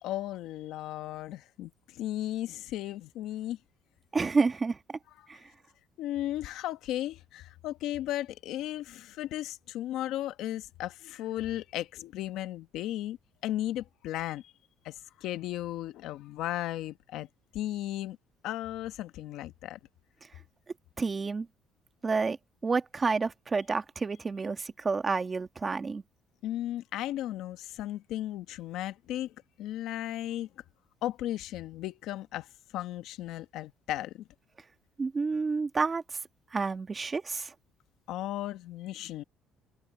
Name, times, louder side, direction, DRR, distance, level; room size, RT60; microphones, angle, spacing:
voice 1, 0.0-3.6 5.2-5.3 6.0-13.2 13.4-14.5 14.8-17.3 17.5-18.2 18.4-19.8 26.4-30.5 31.0-32.5 32.7-34.3 38.1-39.2, left 13 dB, 75° left, 1.2 m, -35 dB
voice 2, 4.1-4.8 5.3-5.4 21.0-21.5 22.0-22.4 22.6-26.0 35.0-36.0 36.5-37.5, right 4 dB, 25° right, 1.7 m, -29 dB
cardioid pair, 125°, 0 cm